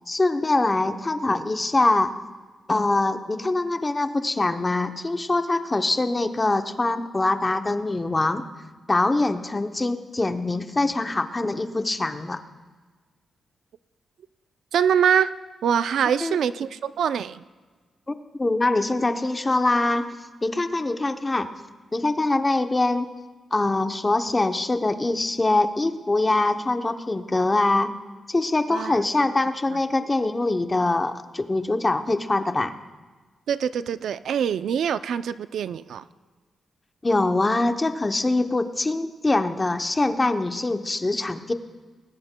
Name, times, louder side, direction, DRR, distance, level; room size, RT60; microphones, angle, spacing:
voice 1, 0.1-2.1 2.7-8.4 8.9-12.4 16.2-16.4 18.1-20.1 20.4-21.5 21.9-23.1 23.5-27.9 28.3-32.7 37.0-41.5, left 2 dB, 20° left, 8 dB, 0.7 m, -23 dB
voice 2, 14.7-15.3 15.6-17.4 28.7-29.0 33.5-36.1, right 8 dB, 80° right, 14 dB, 0.4 m, -24 dB
20.5 x 18.5 x 2.2 m, 1.4 s
wide cardioid pair, 155°, 0 cm